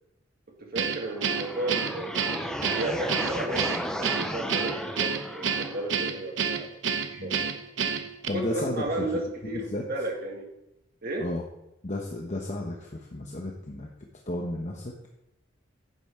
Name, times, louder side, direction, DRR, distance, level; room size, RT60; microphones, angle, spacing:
voice 1, 0.6-2.3 2.6-3.7 4.0-6.7 7.1-7.5 8.3-10.5 11.0-11.3, right 2 dB, 50° right, 0 dB, 2.0 m, -33 dB
Guitar, 0.8-8.3, right 6 dB, 70° right, 0.8 m, -29 dB
sound 1, 1.0-6.0, equal, 5° left, 0.5 m, -34 dB
voice 2, 8.3-9.1 9.4-9.8 11.2-11.4 11.8-13.9 14.3-14.9, left 1 dB, 40° left, 0 dB, 1.0 m, -33 dB
10.0 x 8.8 x 3.7 m, 0.86 s
head